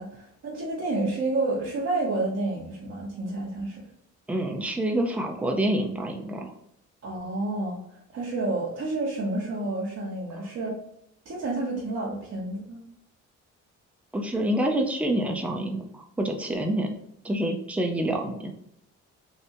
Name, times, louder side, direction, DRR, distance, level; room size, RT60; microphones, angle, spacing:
voice 1, 0.0-3.8 7.0-10.7 11.2-12.8, right 2 dB, 55° right, -4 dB, 1.1 m, -30 dB
voice 2, 4.3-6.5 14.1-16.9 17.2-18.5, right 1 dB, 5° right, 2 dB, 0.5 m, -27 dB
3.3 x 2.6 x 2.7 m, 0.73 s
cardioid pair, 90°, 30 cm